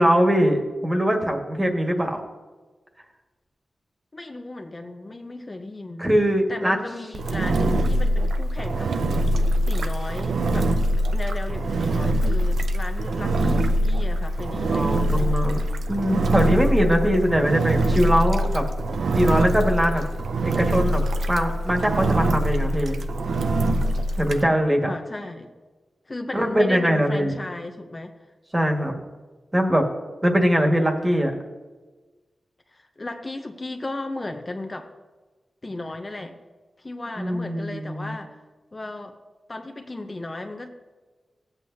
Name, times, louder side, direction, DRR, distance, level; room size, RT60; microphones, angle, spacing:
voice 1, 0.0-2.2 6.0-6.8 7.5-7.7 14.7-15.6 15.9-18.6 19.1-20.0 20.4-21.0 21.3-23.0 24.2-24.9 26.3-27.3 28.5-29.0 29.5-29.8 30.2-31.3 37.2-38.2, equal, 20° right, 2 dB, 1.8 m, -21 dB
voice 2, 4.1-6.1 6.5-8.9 9.7-10.8 11.1-15.5 24.8-25.5 26.1-28.1 32.7-34.9 35.6-36.4 36.8-38.4 38.7-39.2 39.5-40.7, left 2 dB, 35° left, 4 dB, 0.9 m, -35 dB
Engine, 7.1-24.4, right 1 dB, 85° right, 0.6 m, -23 dB
15.0 x 8.2 x 2.8 m, 1.3 s
cardioid pair, 60°, 0 cm